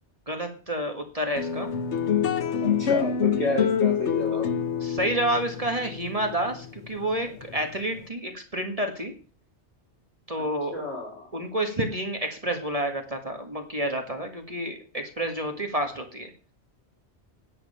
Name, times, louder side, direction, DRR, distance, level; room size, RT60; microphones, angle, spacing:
voice 1, 0.3-1.7 4.3-4.4 4.8-9.1 10.3-10.8 11.3-16.3, right 1 dB, 30° right, 4 dB, 1.8 m, -29 dB
sound 1, 1.4-8.0, left 7 dB, 85° left, 1.2 m, -26 dB
voice 2, 2.6-4.5 10.4-10.5 10.7-11.3, left 2 dB, 70° left, -2 dB, 4.9 m, -31 dB
10.5 x 9.5 x 5.6 m, 0.38 s
omnidirectional pair, 1.2 m